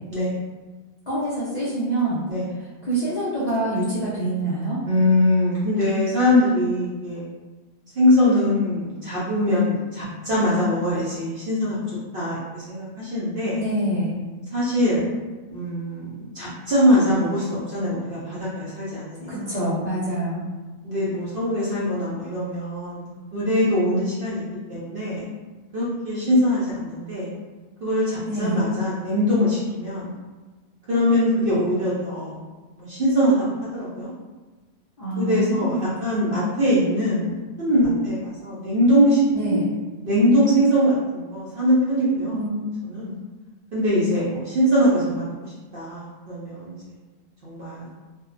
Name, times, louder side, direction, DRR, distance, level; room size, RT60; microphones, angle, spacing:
voice 1, 1.1-2.2 2.6-4.8 13.5-14.2 19.3-20.4 28.2-28.6 35.0-35.9 36.2-36.4 39.3-39.6 42.3-42.5, right 1 dB, 55° left, -10 dB, 0.4 m, -26 dB
voice 2, 4.9-7.2 8.0-11.8 12.1-13.6 14.5-15.0 15.5-19.6 20.8-24.4 24.7-25.3 25.7-27.3 27.8-30.2 30.9-32.4 32.8-33.3 33.7-34.1 35.2-39.2 39.5-39.6 40.0-42.4 42.8-43.2 43.7-46.8 47.4-47.9, equal, 60° right, -9 dB, 0.6 m, -22 dB
2.6 x 2.1 x 2.4 m, 1.3 s
omnidirectional pair, 1.5 m